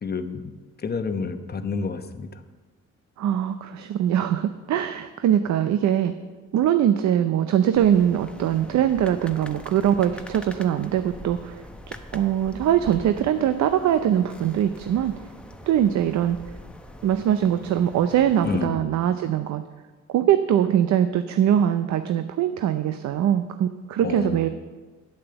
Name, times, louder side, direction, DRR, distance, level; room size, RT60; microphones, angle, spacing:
voice 1, 0.0-0.5 0.8-2.4 18.4-18.8 24.0-24.5, left 4 dB, 35° left, 9 dB, 0.9 m, -29 dB
voice 2, 3.2-6.1 6.5-11.6 12.1-15.1 15.7-16.4 17.0-19.6 20.1-24.5, right 10 dB, 65° right, 10 dB, 0.6 m, -22 dB
sound 1, 7.7-18.7, equal, 5° left, 0.8 m, -43 dB
9.1 x 8.6 x 6.9 m, 1.3 s
cardioid pair, 90°, 30 cm